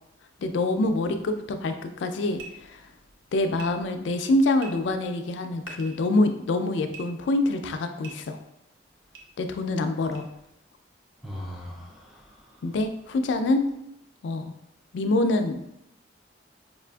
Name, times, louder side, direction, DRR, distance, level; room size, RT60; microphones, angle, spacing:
voice 1, 0.4-2.9 3.3-8.4 9.4-10.3 12.6-13.7 14.2-14.5 14.9-15.6, left 2 dB, 70° left, 7 dB, 0.3 m, -25 dB
sound 1, 2.3-2.5 3.6-3.7 4.6-4.7 5.6-6.0 6.9-7.0 8.0-8.1 9.1-9.2 10.1-10.2, right 6 dB, 80° right, 0.6 m, -42 dB
voice 2, 11.2-12.7, equal, ahead, -3 dB, 0.4 m, -40 dB
4.8 x 2.4 x 2.2 m, 0.83 s
head